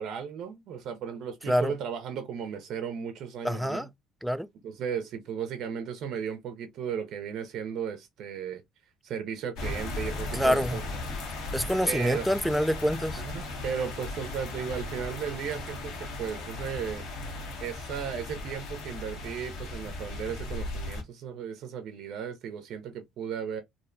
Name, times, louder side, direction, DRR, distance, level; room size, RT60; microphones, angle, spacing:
voice 1, 0.0-3.9 4.6-8.6 9.0-10.8 11.1-11.2 11.9-12.3 13.2-17.0 17.6-23.6, right 7 dB, 60° right, 0.5 m, -35 dB
voice 2, 3.4-3.9 4.2-4.5 10.3-10.8 11.5-13.2, equal, ahead, 0.3 m, -26 dB
sound 1, 9.6-21.0, left 2 dB, 70° left, 0.7 m, -37 dB
2.6 x 2.1 x 2.4 m
hypercardioid pair, 60°, 0 cm